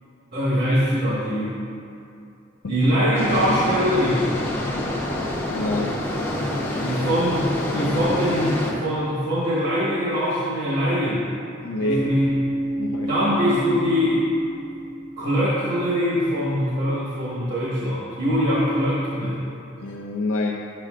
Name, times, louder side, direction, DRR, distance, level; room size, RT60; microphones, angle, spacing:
voice 1, 0.3-1.5 2.7-4.3 6.8-11.2 11.8-12.3 13.1-14.2 15.2-19.4, equal, 50° right, -8 dB, 1.3 m, -22 dB
sound 1, 3.1-8.7, left 1 dB, 10° left, 0.8 m, -27 dB
voice 2, 5.5-6.0 11.6-12.0 12.8-13.1 19.8-20.5, left 2 dB, 85° left, -2 dB, 0.5 m, -26 dB
Bass guitar, 11.8-15.7, right 1 dB, 30° left, 1.1 m, -29 dB
10.0 x 7.6 x 2.5 m, 2.6 s
head